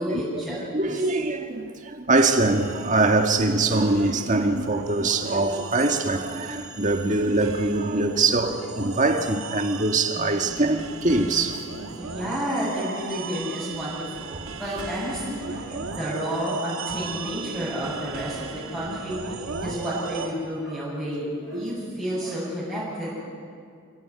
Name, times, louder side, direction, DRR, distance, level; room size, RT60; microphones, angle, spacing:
voice 1, 0.0-0.6 0.9-1.1 10.1-10.5 12.0-23.1, equal, ahead, 7.5 m, -31 dB
voice 2, 0.7-11.7 14.3-14.5 15.7-15.8 21.5-21.7, right 2 dB, 35° right, 1.8 m, -23 dB
sound 1, 2.1-20.3, right 4 dB, 65° right, 2.3 m, -37 dB
28.0 x 18.0 x 9.6 m
head